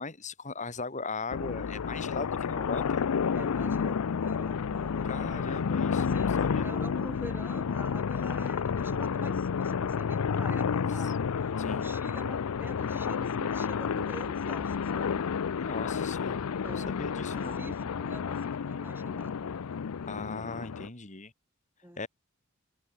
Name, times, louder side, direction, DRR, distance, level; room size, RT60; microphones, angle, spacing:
voice 1, 0.0-3.0 5.0-6.9 11.0-11.1 11.6-11.9 15.6-17.6 20.1-21.3 22.0-22.1, left 3 dB, 35° left, 2.7 m, -39 dB
sound 1, 1.3-20.9, left 6 dB, 90° left, 0.5 m, -30 dB
voice 2, 3.3-5.3 6.0-6.3 6.6-15.2 16.6-19.6 21.8-22.1, right 1 dB, 10° right, 3.7 m, -46 dB
head